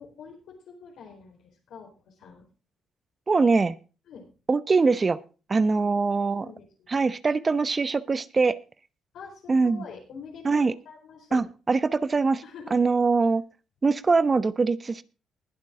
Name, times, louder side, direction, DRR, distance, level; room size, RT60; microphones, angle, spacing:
voice 1, 0.0-2.5 4.1-4.3 5.8-5.9 6.2-7.0 9.1-11.5 12.4-12.8, left 6 dB, 75° left, -1 dB, 4.4 m, -45 dB
voice 2, 3.3-3.8 4.5-5.2 5.5-6.5 6.9-8.6 9.5-9.8 10.4-10.7 11.3-12.4 12.7-13.4 13.8-15.0, right 4 dB, 30° right, 15 dB, 0.8 m, -22 dB
20.5 x 7.5 x 3.7 m, 0.34 s
cardioid pair, 90°, 0 cm